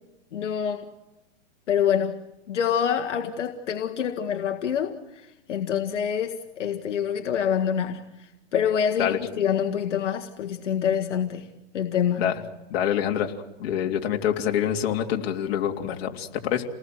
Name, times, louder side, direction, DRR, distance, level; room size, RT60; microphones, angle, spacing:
voice 1, 0.3-0.9 1.7-2.2 2.5-5.0 5.5-11.5 11.7-12.3, left 8 dB, 80° left, 1.9 m, -26 dB
voice 2, 12.7-13.3 13.6-16.6, left 10 dB, 55° left, 3.1 m, -26 dB
29.5 x 19.0 x 7.8 m
hypercardioid pair, 140°, 36 cm